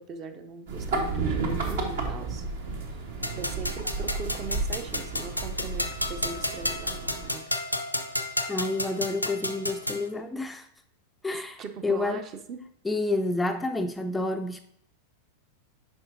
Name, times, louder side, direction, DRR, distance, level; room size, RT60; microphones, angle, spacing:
voice 1, 0.0-2.5 3.4-7.5 11.3-12.7, right 5 dB, 30° right, 8 dB, 0.6 m, -40 dB
sound 1, 0.7-7.3, right 3 dB, 60° right, 1.1 m, -32 dB
sound 2, 3.2-10.1, left 1 dB, 90° left, 0.5 m, -32 dB
voice 2, 8.5-10.7 11.2-12.3 12.8-14.6, left 2 dB, 10° left, 6 dB, 0.4 m, -29 dB
9.1 x 5.5 x 2.7 m, 0.73 s
figure-of-eight pair, 90°, 0 cm